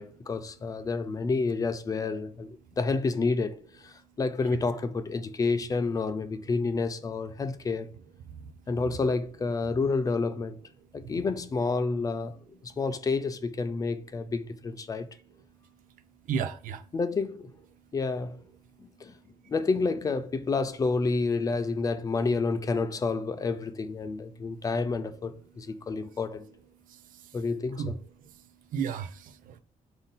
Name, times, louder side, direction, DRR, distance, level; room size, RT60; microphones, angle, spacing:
voice 1, 0.0-2.5 2.8-3.6 3.8-7.9 8.7-10.6 10.9-12.4 12.6-15.1 16.9-17.5 17.9-18.4 19.0-19.1 19.5-26.5 27.3-28.0, left 4 dB, 25° left, 0.3 m, -29 dB
voice 2, 16.3-16.8 26.9-27.3 27.8-27.9 28.7-29.6, right 7 dB, 85° right, 0.5 m, -33 dB
3.9 x 2.6 x 3.6 m
cardioid pair, 145°, 14 cm